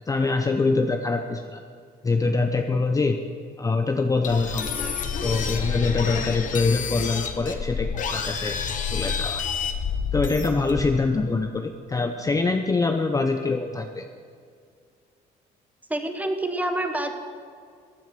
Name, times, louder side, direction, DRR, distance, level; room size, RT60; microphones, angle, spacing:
voice 1, 0.1-1.6 2.0-3.2 3.6-4.7 5.2-8.6 8.9-9.5 10.1-14.1, left 3 dB, 20° left, 6 dB, 0.7 m, -24 dB
sound 1, 4.2-11.0, left 6 dB, 50° left, 1.3 m, -29 dB
voice 2, 4.6-4.9 15.9-17.1, right 1 dB, 10° right, 6 dB, 1.3 m, -28 dB
15.0 x 9.4 x 6.0 m, 2.2 s
cardioid pair, 110°, 17 cm